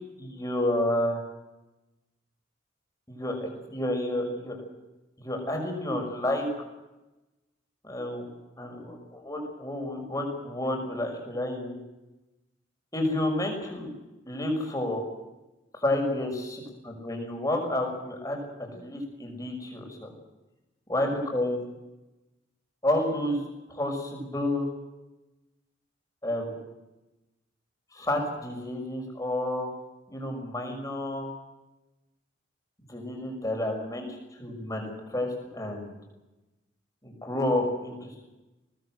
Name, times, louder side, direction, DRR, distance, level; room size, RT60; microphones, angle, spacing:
voice 1, 0.2-1.2 3.1-4.6 5.2-6.4 7.8-8.3 8.6-11.8 12.9-13.9 14.2-15.0 15.7-16.3 17.0-20.1 20.9-21.6 22.8-23.4 23.7-24.7 26.2-26.5 27.9-29.7 30.1-31.3 32.9-36.0 37.0-38.2, left 1 dB, 20° left, 2 dB, 6.1 m, -30 dB
22.0 x 19.5 x 7.8 m, 1.0 s
head